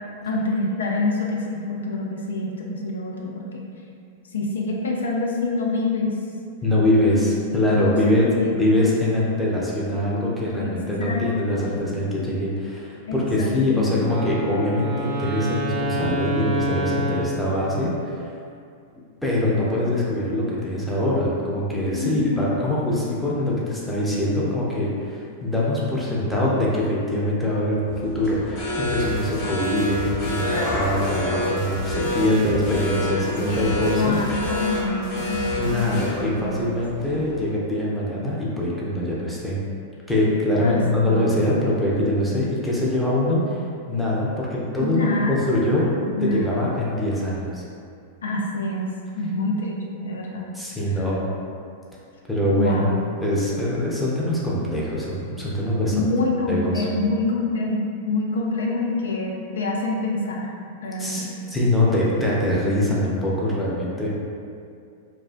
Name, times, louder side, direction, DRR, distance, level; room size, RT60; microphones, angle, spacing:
voice 1, 0.2-3.7 4.3-6.2 7.1-8.6 10.6-10.7 11.0-11.3 11.5-11.8 13.1-14.1 21.9-22.4 32.0-32.1 33.1-36.0 36.3-36.5 40.6-41.2 44.8-45.4 46.1-46.6 48.2-50.5 50.9-51.0 52.6-53.0 55.9-60.5 60.8-61.3, left 2 dB, 75° left, -2 dB, 0.3 m, -26 dB
voice 2, 6.6-18.3 19.2-34.2 35.6-39.6 40.1-47.6 50.5-51.3 52.3-52.9 53.2-56.0 56.5-56.9 61.0-64.1, left 1 dB, ahead, -7 dB, 0.5 m, -23 dB
Wind instrument woodwind instrument, 14.0-18.2, right 1 dB, 55° right, 0.5 m, -28 dB
sound 1, 27.9-37.5, left 1 dB, 35° left, 1.1 m, -29 dB
sound 2, 28.9-36.2, left 1 dB, 50° left, 0.8 m, -35 dB
2.4 x 2.2 x 2.4 m, 2.4 s
figure-of-eight pair, 95°, 0 cm